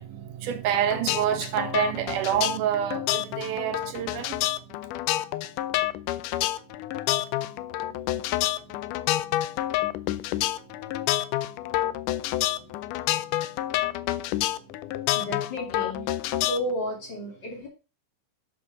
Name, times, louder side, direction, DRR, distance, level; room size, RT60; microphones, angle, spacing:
voice 1, 0.0-4.6 9.8-9.9, right 10 dB, 75° right, 2.3 m, -28 dB
sound 1, 0.7-16.7, left 15 dB, 80° left, 2.0 m, -28 dB
voice 2, 15.1-16.1 16.5-17.7, equal, 35° left, 3.0 m, -32 dB
7.8 x 4.7 x 6.0 m
omnidirectional pair, 3.8 m